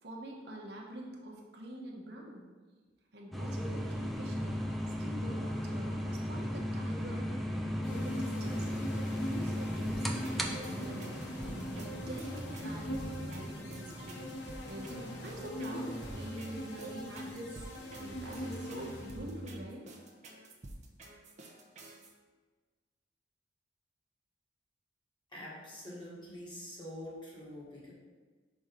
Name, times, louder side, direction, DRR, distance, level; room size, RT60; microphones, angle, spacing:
voice 1, 0.0-2.5 3.1-7.3 7.9-11.1 11.7-19.9, right 1 dB, 65° right, -2 dB, 1.1 m, -45 dB
sound 1, 3.3-19.3, equal, ahead, 0.5 m, -38 dB
sound 2, 7.8-19.6, left 1 dB, 75° left, 1.0 m, -43 dB
sound 3, 9.9-22.1, right 1 dB, 40° right, 0.8 m, -48 dB
voice 2, 25.3-27.9, left 1 dB, 25° left, -6 dB, 1.8 m, -45 dB
5.4 x 4.4 x 5.2 m, 1.4 s
head